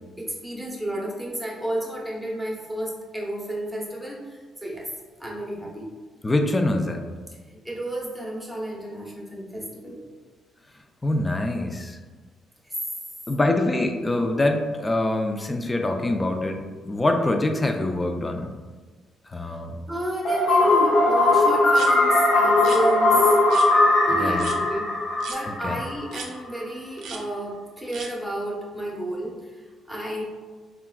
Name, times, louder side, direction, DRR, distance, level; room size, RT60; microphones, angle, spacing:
voice 1, 0.2-4.9 5.2-5.9 7.5-10.0 12.7-12.8 19.4-19.5 19.9-23.4 24.1-24.9 25.3-30.2, right 1 dB, 5° right, -4 dB, 0.8 m, -31 dB
voice 2, 6.2-7.0 11.0-12.0 13.3-18.5 19.3-19.8 24.1-24.5 25.5-25.8, left 2 dB, 20° left, 4 dB, 0.3 m, -24 dB
sound 1, 20.3-26.1, left 2 dB, 80° left, 0.8 m, -19 dB
sound 2, 21.7-21.9 22.6-22.8 23.5-23.7 24.4-24.6 25.2-25.4 26.1-26.3 27.0-27.2 27.9-28.1, right 5 dB, 80° right, 0.4 m, -36 dB
3.6 x 2.3 x 2.2 m, 1.4 s
cardioid pair, 90°, 0 cm